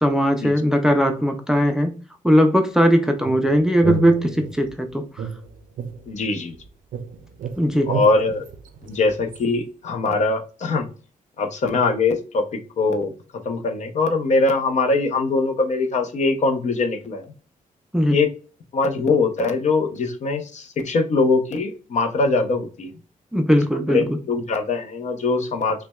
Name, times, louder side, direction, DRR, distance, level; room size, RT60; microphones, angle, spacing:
voice 1, 0.0-1.9 2.2-5.0 7.6-7.9 17.9-18.2 23.3-24.0, equal, 5° right, 5 dB, 0.4 m, -18 dB
sound 1, 3.2-4.7 5.2-6.6 6.9-9.4, right 5 dB, 70° right, 0.5 m, -31 dB
voice 2, 6.1-6.5 7.9-8.4 8.8-10.9 11.4-13.1 13.4-17.3 18.1-18.3 18.7-22.9 23.9-25.9, left 3 dB, 55° left, 6 dB, 0.7 m, -22 dB
5.7 x 2.1 x 2.3 m, 0.37 s
wide cardioid pair, 150°, 14 cm